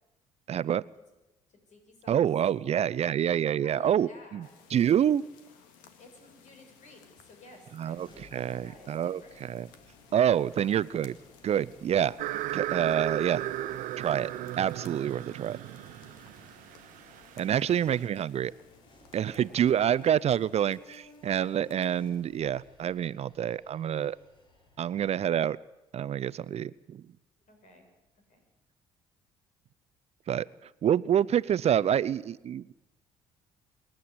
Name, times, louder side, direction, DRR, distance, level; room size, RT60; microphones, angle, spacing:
voice 1, 0.5-0.8 2.1-4.5 4.7-5.3 7.8-9.7 10.1-11.2 11.4-12.2 12.5-13.4 14.0-14.3 14.6-15.6 17.4-18.5 19.1-24.2 24.8-25.6 25.9-27.0 30.3-30.5 30.8-32.7, right 9 dB, 50° right, 18 dB, 0.6 m, -27 dB
voice 2, 1.5-2.3 2.6-2.7 3.6-4.5 6.0-9.4 10.5-10.7 19.4-19.5 27.5-27.9 28.3-28.4, left 2 dB, 60° left, 4 dB, 7.2 m, -54 dB
sound 1, 4.4-23.1, left 7 dB, 80° left, 2.1 m, -59 dB
sound 2, 8.0-25.4, left 1 dB, 35° left, 5.3 m, -58 dB
sound 3, 12.2-18.0, right 13 dB, 70° right, 0.9 m, -36 dB
26.5 x 10.5 x 9.6 m, 1.0 s
hypercardioid pair, 60°, 14 cm